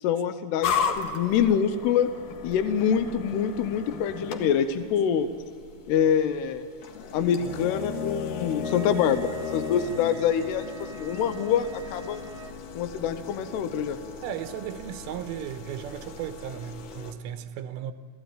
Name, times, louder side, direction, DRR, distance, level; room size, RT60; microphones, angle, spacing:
voice 1, 0.0-2.1 2.4-5.3 5.9-6.7 7.1-12.2 12.8-14.0, left 8 dB, 80° left, 2.4 m, -25 dB
sound 1, 0.6-17.1, left 6 dB, 60° left, 2.3 m, -36 dB
Wind instrument woodwind instrument, 8.6-12.6, right 5 dB, 60° right, 1.8 m, -45 dB
voice 2, 14.2-17.9, right 10 dB, 85° right, 3.4 m, -36 dB
28.0 x 16.0 x 9.1 m
omnidirectional pair, 5.7 m